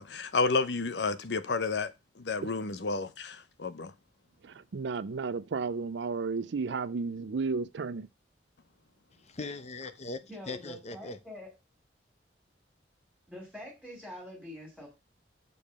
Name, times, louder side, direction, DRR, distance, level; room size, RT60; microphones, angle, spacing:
voice 1, 0.0-1.9 2.2-3.9, left 4 dB, 65° left, 0.8 m, -31 dB
voice 2, 4.4-8.1, right 4 dB, 75° right, 0.5 m, -33 dB
voice 3, 9.2-11.2, left 3 dB, 40° left, 0.9 m, -40 dB
voice 4, 10.3-11.5 13.3-14.9, left 1 dB, ahead, 3.2 m, -45 dB
6.9 x 5.4 x 6.5 m
head